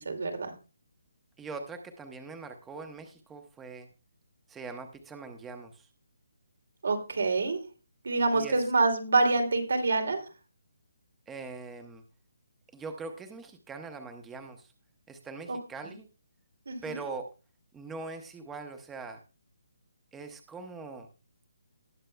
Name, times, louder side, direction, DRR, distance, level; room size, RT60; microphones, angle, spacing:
voice 1, 0.1-0.5 6.8-7.6 8.0-10.2 15.5-15.6 15.8-15.9 16.7-17.0, right 3 dB, 75° right, 5 dB, 2.8 m, -26 dB
voice 2, 1.4-3.9 4.5-5.9 8.3-8.7 11.3-12.0 12.7-14.7 15.1-16.1 16.8-17.3 17.7-19.2 20.1-21.1, right 4 dB, 5° right, 6 dB, 0.8 m, -42 dB
19.0 x 6.7 x 2.3 m, 0.32 s
hypercardioid pair, 170°, 0 cm